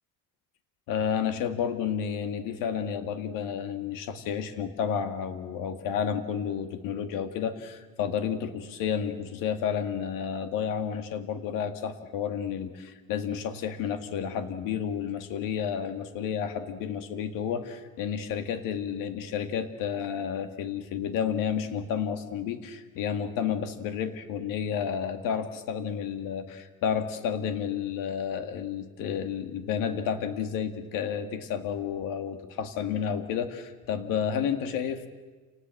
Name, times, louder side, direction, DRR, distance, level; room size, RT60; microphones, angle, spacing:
voice 1, 0.9-35.1, left 8 dB, 75° left, 9 dB, 2.0 m, -31 dB
28.5 x 19.5 x 7.8 m, 1.3 s
cardioid pair, 145°, 33 cm